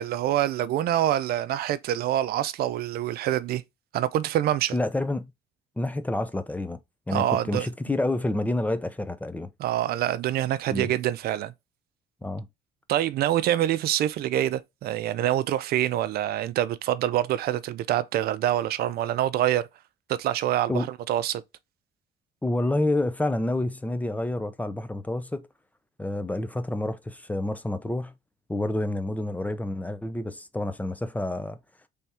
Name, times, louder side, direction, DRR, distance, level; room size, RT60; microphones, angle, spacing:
voice 1, 0.0-3.6 3.9-4.7 7.1-7.7 9.6-11.5 12.9-19.7 20.1-21.4, right 12 dB, 65° right, 0.5 m, -26 dB
voice 2, 4.7-5.3 5.8-6.8 7.1-9.5 10.7-10.9 12.2-12.5 20.7-20.9 22.4-25.5 26.0-28.1 28.5-31.6, left 1 dB, 10° left, 0.5 m, -28 dB
3.5 x 3.4 x 4.2 m
cardioid pair, 110°, 17 cm